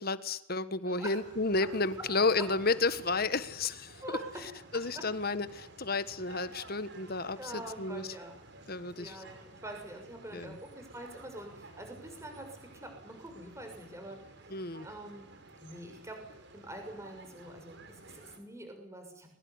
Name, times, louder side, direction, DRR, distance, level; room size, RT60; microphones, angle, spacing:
voice 1, 0.0-4.0 4.7-8.1 8.7-9.2 10.3-10.6 14.5-14.9, left 3 dB, 45° left, 13 dB, 1.5 m, -32 dB
voice 2, 0.8-1.2 2.4-2.5 4.0-4.4 4.9-5.0 7.4-8.4 8.9-14.4 14.8-15.3 15.6-16.2 16.5-19.3, right 1 dB, 15° right, 4 dB, 6.6 m, -45 dB
sound 1, 1.2-18.4, right 2 dB, 55° right, 4.9 m, -53 dB
23.0 x 22.0 x 9.8 m, 0.80 s
head